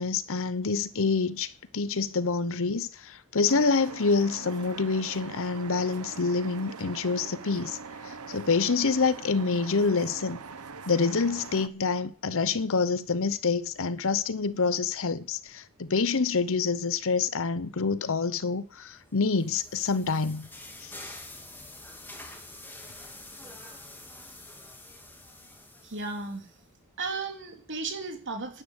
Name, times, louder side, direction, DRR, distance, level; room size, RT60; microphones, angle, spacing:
voice 1, 0.0-7.8 8.0-10.4 10.9-20.5 20.8-20.9, left 4 dB, 65° left, 0.9 m, -27 dB
sound 1, 3.5-11.7, right 5 dB, 80° right, 1.1 m, -42 dB
sound 2, 19.0-26.6, left 2 dB, 10° left, 2.8 m, -47 dB
voice 2, 25.8-26.5 27.0-28.6, right 3 dB, 55° right, 3.3 m, -35 dB
11.5 x 10.0 x 8.0 m
head